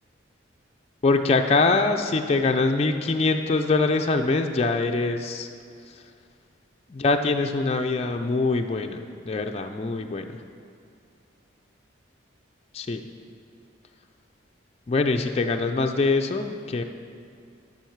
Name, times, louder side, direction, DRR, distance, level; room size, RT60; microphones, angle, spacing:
voice 1, 1.0-5.5 5.9-6.0 6.9-10.4 12.7-13.0 14.9-16.8, left 3 dB, 30° left, 5 dB, 0.3 m, -23 dB
11.5 x 5.5 x 4.6 m, 2.4 s
head